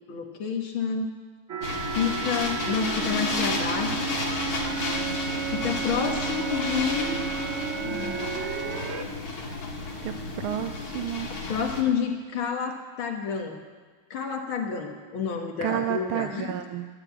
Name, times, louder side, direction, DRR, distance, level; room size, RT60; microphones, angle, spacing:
voice 1, 0.1-1.1 1.9-4.1 5.5-7.2 7.8-8.2 11.5-13.6 14.1-16.6, left 6 dB, 70° left, 3 dB, 2.4 m, -29 dB
sound 1, 1.5-9.1, right 6 dB, 50° right, 0.8 m, -32 dB
sound 2, 1.6-11.8, left 3 dB, 45° left, 2.4 m, -32 dB
voice 2, 10.0-11.3 15.6-16.9, right 12 dB, 80° right, 8 dB, 1.4 m, -31 dB
13.0 x 10.0 x 8.5 m, 1.4 s
omnidirectional pair, 2.3 m